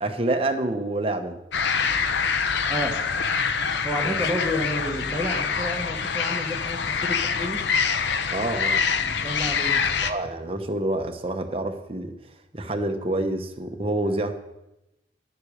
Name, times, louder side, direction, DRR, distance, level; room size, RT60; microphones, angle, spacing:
voice 1, 0.0-1.4 4.0-4.2 8.3-8.8 10.0-12.1 12.5-14.4, right 2 dB, 30° right, 6 dB, 0.9 m, -27 dB
sound 1, 1.5-10.1, left 5 dB, 75° left, 0.7 m, -25 dB
voice 2, 3.8-7.6 9.0-9.9, equal, 5° left, -3 dB, 1.4 m, -30 dB
11.0 x 8.0 x 6.5 m, 0.91 s
head